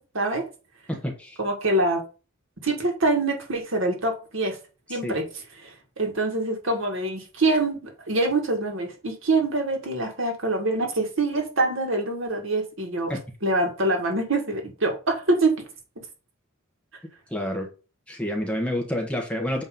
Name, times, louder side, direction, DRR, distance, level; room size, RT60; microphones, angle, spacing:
voice 1, 0.1-0.4 1.4-2.0 2.6-4.6 4.9-13.1 13.4-15.7, right 2 dB, 65° right, 2.1 m, -25 dB
voice 2, 0.9-1.4 5.0-5.1 13.1-13.2 17.3-17.7 18.1-19.6, left 1 dB, 5° left, 1.3 m, -28 dB
8.2 x 3.3 x 5.3 m
head